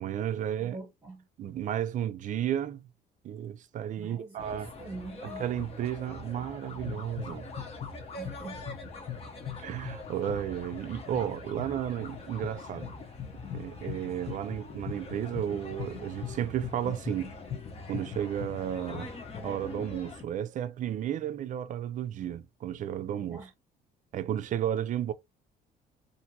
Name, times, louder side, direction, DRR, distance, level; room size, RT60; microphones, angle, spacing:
voice 1, 0.0-0.8 1.4-2.9 3.2-4.7 5.2-7.5 9.6-12.9 13.5-17.4 17.9-19.1 19.4-23.4 24.1-25.1, right 10 dB, 50° right, 0.4 m, -33 dB
voice 2, 0.6-1.2 4.0-5.4 8.2-8.6 23.2-23.5, right 3 dB, 20° right, 1.0 m, -44 dB
sound 1, 4.4-20.2, left 5 dB, 35° left, 0.9 m, -41 dB
2.8 x 2.6 x 2.7 m
cardioid pair, 110°, 17 cm